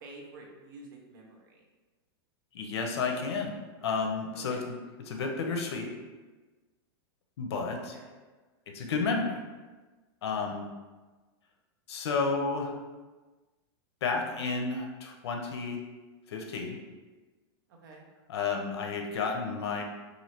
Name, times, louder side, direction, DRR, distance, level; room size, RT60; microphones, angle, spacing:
voice 1, 0.0-1.6 4.3-4.6 7.9-8.1 17.8-18.1, right 2 dB, 50° right, 0 dB, 0.6 m, -49 dB
voice 2, 2.5-3.6 3.8-4.8 5.1-5.9 7.4-7.9 8.7-9.4 10.2-10.7 11.9-12.7 14.0-15.8 16.3-16.8 18.3-19.8, left 4 dB, 85° left, 2 dB, 0.6 m, -31 dB
3.1 x 2.5 x 2.8 m, 1.3 s
supercardioid pair, 170°, 13 cm